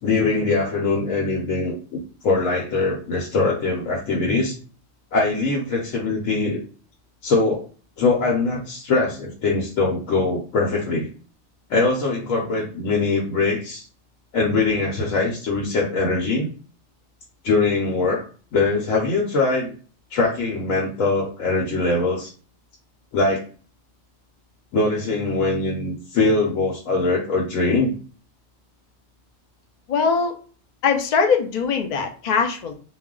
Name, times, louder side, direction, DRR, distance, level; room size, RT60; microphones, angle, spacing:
voice 1, 0.0-4.6 5.1-6.6 7.2-7.7 8.0-11.1 11.7-13.8 14.3-16.5 17.4-18.2 18.5-19.7 20.1-22.3 23.1-23.4 24.7-27.9, left 3 dB, 75° left, -2 dB, 1.0 m, -22 dB
voice 2, 29.9-30.3 30.8-32.8, left 5 dB, 60° left, 4 dB, 0.4 m, -21 dB
2.4 x 2.1 x 3.6 m, 0.39 s
omnidirectional pair, 1.4 m